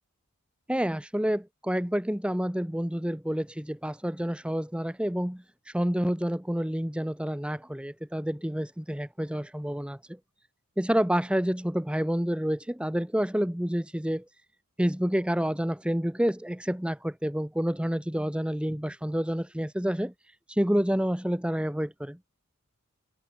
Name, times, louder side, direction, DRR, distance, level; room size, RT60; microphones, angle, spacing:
voice 1, 0.7-10.2 10.8-14.2 14.8-20.1 20.5-22.2, equal, 5° right, 0.9 m, -28 dB
head